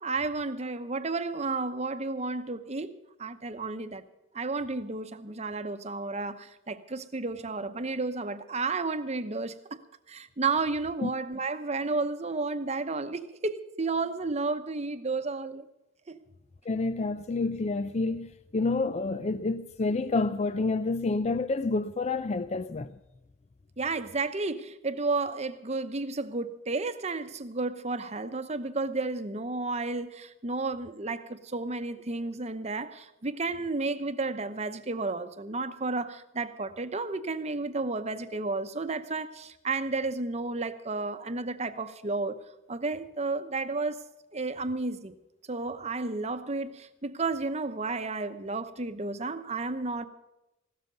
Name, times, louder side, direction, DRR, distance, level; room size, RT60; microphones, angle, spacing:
voice 1, 0.0-4.0 4.3-15.7 16.1-16.2 23.8-42.4 42.7-44.0 44.3-45.1 45.5-50.0, right 3 dB, 35° right, 0.9 m, -32 dB
voice 2, 16.7-22.9, left 3 dB, 35° left, 0.4 m, -29 dB
16.0 x 13.5 x 5.3 m
head